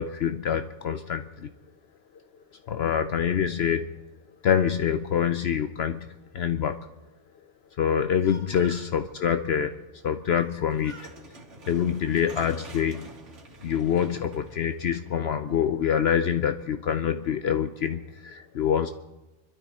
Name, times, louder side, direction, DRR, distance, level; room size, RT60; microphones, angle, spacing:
voice 1, 0.0-1.5 2.7-3.9 4.4-6.9 7.8-11.0 11.7-13.1 13.6-18.9, left 8 dB, 65° left, 9 dB, 0.9 m, -26 dB
Speech, 8.1-9.0 10.3-10.6 10.8-11.2 11.9-12.7, right 2 dB, 35° right, 2.7 m, -49 dB
sound 1, 10.7-15.8, right 2 dB, 85° right, 2.2 m, -47 dB
25.0 x 12.5 x 4.2 m, 1.1 s
omnidirectional pair, 1.2 m